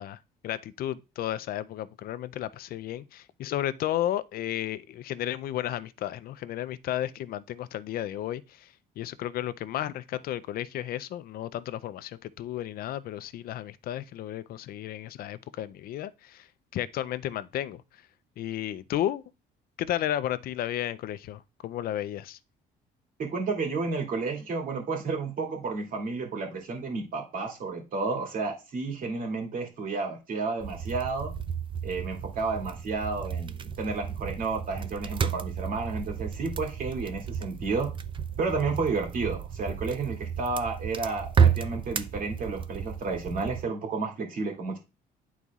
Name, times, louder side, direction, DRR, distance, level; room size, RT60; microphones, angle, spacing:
voice 1, 0.0-18.0 18.4-19.2 19.8-22.4, left 12 dB, 60° left, 0.5 m, -33 dB
voice 2, 23.2-31.3 31.8-37.9 38.4-44.8, right 4 dB, 55° right, 2.5 m, -31 dB
sound 1, 30.6-43.6, right 7 dB, 30° right, 0.5 m, -31 dB
10.5 x 4.1 x 2.4 m
cardioid pair, 110°, 17 cm